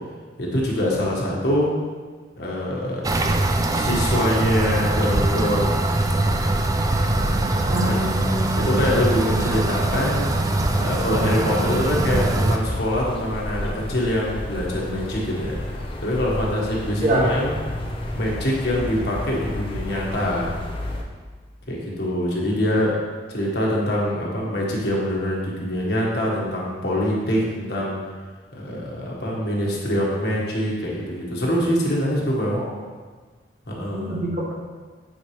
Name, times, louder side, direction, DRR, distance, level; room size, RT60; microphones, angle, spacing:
voice 1, 0.4-1.7 2.4-3.1 3.5-5.8 7.2-8.1 8.6-10.3 10.8-15.6 16.0-17.6 18.1-20.6 21.7-23.0 23.3-28.0 28.5-32.6 33.7-34.2, equal, 60° left, -4 dB, 1.4 m, -24 dB
sound 1, 3.0-12.6, right 2 dB, 20° right, 0.3 m, -22 dB
sound 2, 5.4-21.0, left 1 dB, 30° left, 0.6 m, -33 dB
voice 2, 7.6-8.5 17.0-17.3 32.5-32.7 33.9-34.5, right 1 dB, 45° right, -3 dB, 1.3 m, -24 dB
8.7 x 4.4 x 3.2 m, 1.4 s
head